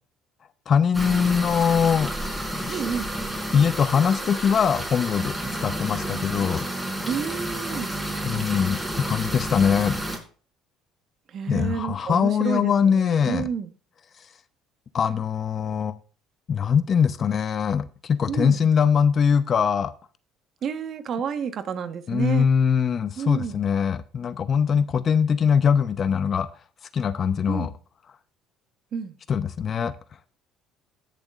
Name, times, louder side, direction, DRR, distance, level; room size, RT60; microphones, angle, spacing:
voice 1, 0.7-2.1 2.5-2.8 3.5-5.3 5.6-6.6 8.2-10.0 11.5-13.5 14.9-15.9 16.5-19.9 22.1-26.5 26.9-27.7 29.3-29.9, left 7 dB, 40° left, 0.7 m, -22 dB
sound 1, 0.9-10.2, right 1 dB, 10° right, 4.0 m, -31 dB
voice 2, 2.7-3.1 7.0-7.9 11.3-13.7 18.3-18.6 20.6-22.5 23.2-23.6 27.5-27.7 28.9-29.1, right 7 dB, 50° right, 1.3 m, -30 dB
18.5 x 6.9 x 2.5 m
supercardioid pair, 100°, 0 cm